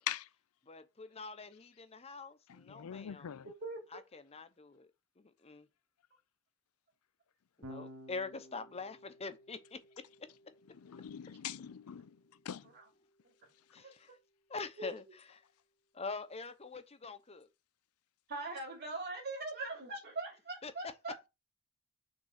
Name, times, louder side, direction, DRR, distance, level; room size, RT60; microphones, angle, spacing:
voice 1, 0.7-3.3 3.9-4.9 5.2-5.7 7.6-9.8 13.7-14.1 14.5-15.0 15.3-15.4 15.9-17.5 20.6-20.9, left 4 dB, 30° left, 0.8 m, -44 dB
voice 2, 2.5-3.5 10.7-12.1 12.5-12.6, left 10 dB, 75° left, 0.4 m, -42 dB
voice 3, 3.4-3.8 12.6-12.8 13.8-13.9 14.8-14.9 18.3-21.2, right 2 dB, 50° right, 3.1 m, -41 dB
Electric guitar / Bass guitar, 7.6-14.0, equal, 70° right, 2.6 m, -56 dB
6.4 x 3.8 x 5.9 m
head